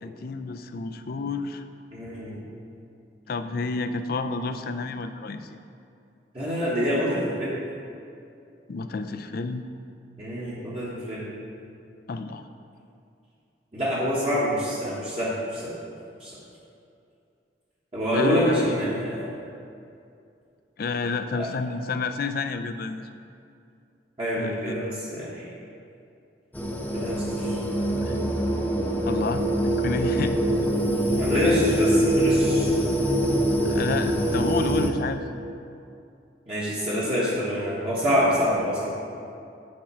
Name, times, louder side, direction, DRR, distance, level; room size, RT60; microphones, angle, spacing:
voice 1, 0.0-1.6 3.3-5.6 8.7-9.6 12.1-12.5 18.1-18.8 20.8-23.0 24.4-24.9 28.0-28.2 29.1-30.4 33.6-35.3, left 4 dB, 55° left, 9 dB, 0.4 m, -30 dB
voice 2, 1.9-2.4 6.3-7.6 10.2-11.3 13.7-15.7 16.2-16.4 17.9-19.3 21.3-21.5 24.2-25.5 26.9-27.6 31.2-32.7 36.5-38.9, equal, 35° right, -8 dB, 1.3 m, -26 dB
sound 1, 26.5-34.9, right 1 dB, 10° left, 0.6 m, -24 dB
8.6 x 4.4 x 5.6 m, 2.5 s
head